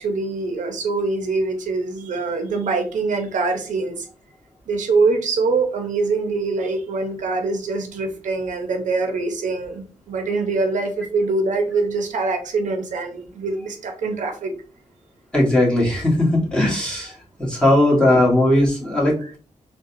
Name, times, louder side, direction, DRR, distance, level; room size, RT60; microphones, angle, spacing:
voice 1, 0.0-4.1 4.7-14.5 17.6-18.1 19.2-19.3, right 3 dB, 75° right, 4 dB, 0.6 m, -24 dB
voice 2, 15.3-17.1 17.4-19.4, left 1 dB, 5° left, -5 dB, 1.6 m, -18 dB
3.9 x 2.2 x 2.6 m, 0.38 s
cardioid pair, 100°, 13 cm